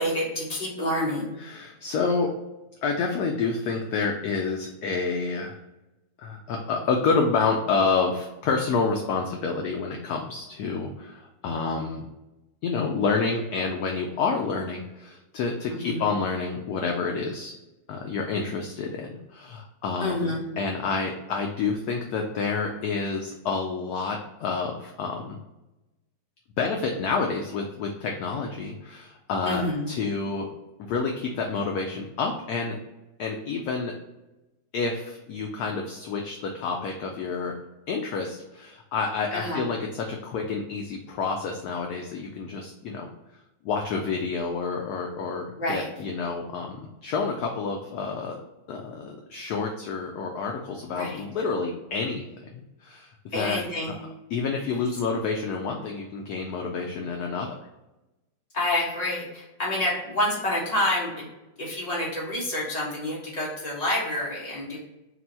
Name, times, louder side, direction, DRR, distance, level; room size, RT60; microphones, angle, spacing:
voice 1, 0.0-1.3 15.7-16.0 20.0-20.5 29.4-29.9 39.3-39.7 45.6-45.9 50.9-51.2 53.3-54.0 54.7-54.8 58.5-61.3 61.6-64.8, left 1 dB, 25° left, -5 dB, 1.2 m, -28 dB
voice 2, 1.4-2.4 2.8-5.6 6.2-12.1 12.6-17.5 17.9-25.4 26.6-30.5 30.8-32.8 33.2-33.9 34.7-37.5 37.9-48.4 48.7-54.0 54.3-57.5, left 4 dB, 75° left, 2 dB, 0.9 m, -29 dB
4.2 x 2.2 x 4.2 m, 0.99 s
omnidirectional pair, 2.1 m